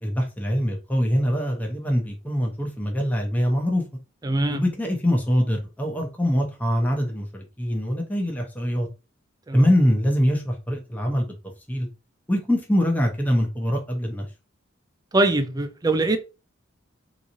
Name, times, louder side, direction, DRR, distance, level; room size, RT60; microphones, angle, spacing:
voice 1, 0.0-3.8 4.5-8.9 9.5-11.3 11.7-11.9 12.3-14.3, equal, 10° left, 0.8 m, -23 dB
voice 2, 4.2-4.6 9.5-9.7 15.1-16.2, right 2 dB, 20° right, 0.4 m, -22 dB
3.7 x 3.0 x 2.7 m
head